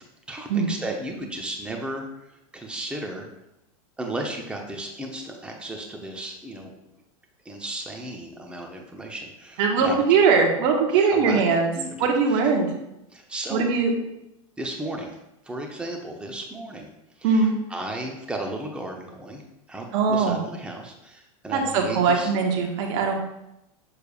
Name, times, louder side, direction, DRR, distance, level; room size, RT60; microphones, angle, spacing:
voice 1, 0.3-3.3 4.0-6.7 7.4-10.0 10.9-11.4 11.7-12.4 13.1-13.8 14.6-15.2 15.4-16.9 17.2-19.4 19.7-22.3, right 1 dB, 5° right, 1 dB, 0.9 m, -34 dB
voice 2, 9.6-11.7 12.0-12.7 13.5-13.9 17.2-17.6 19.9-20.4 21.5-23.1, right 5 dB, 55° right, 2 dB, 1.4 m, -21 dB
6.8 x 6.5 x 2.5 m, 0.87 s
hypercardioid pair, 105°, 18 cm